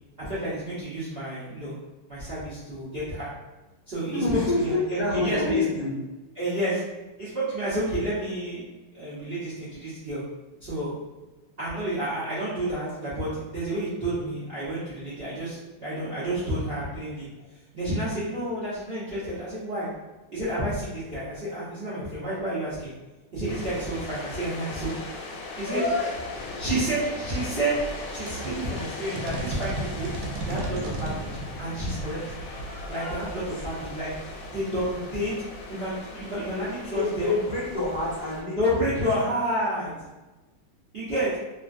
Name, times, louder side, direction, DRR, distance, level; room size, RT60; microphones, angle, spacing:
voice 1, 0.2-1.8 2.1-3.3 3.9-5.6 6.3-6.8 7.2-8.6 8.9-10.2 10.6-10.9 11.6-17.3 17.7-19.9 20.3-22.9 23.3-24.9 25.6-25.8 26.5-27.8 28.1-30.1 30.4-31.3 31.6-32.2 32.9-34.1 34.5-35.3 35.7-37.4 38.6-39.9 40.9-41.3, right 1 dB, 45° right, -11 dB, 0.8 m, -30 dB
voice 2, 4.1-5.9 20.5-20.7 25.6-26.2 33.5-33.9 36.5-38.8 39.1-39.2 39.7-39.9, left 2 dB, 30° left, -10 dB, 0.7 m, -28 dB
sound 1, 23.5-38.4, left 2 dB, 80° left, 1.3 m, -39 dB
sound 2, 27.7-34.2, right 2 dB, 85° right, 1.3 m, -36 dB
3.0 x 2.5 x 2.4 m, 1.1 s
omnidirectional pair, 2.1 m